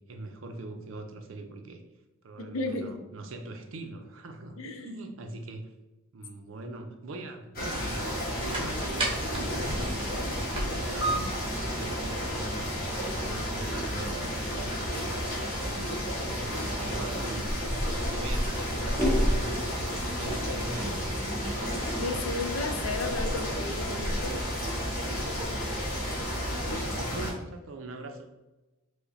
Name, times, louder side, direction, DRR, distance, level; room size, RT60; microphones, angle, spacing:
voice 1, 0.0-1.8 2.2-5.7 6.1-10.0 10.3-14.1 14.5-17.5 17.9-21.0 26.5-28.3, right 2 dB, 75° right, 5 dB, 0.5 m, -42 dB
voice 2, 2.5-2.9 4.6-4.9 22.0-24.4, left 3 dB, 80° left, 6 dB, 0.5 m, -33 dB
sound 1, 7.5-27.3, equal, 45° left, 1.3 m, -32 dB
sound 2, 8.0-19.6, right 2 dB, 25° right, 0.7 m, -39 dB
sound 3, 15.8-15.9 16.6-19.8 20.2-21.0, equal, 10° left, 0.7 m, -30 dB
4.8 x 2.1 x 2.6 m, 1.1 s
head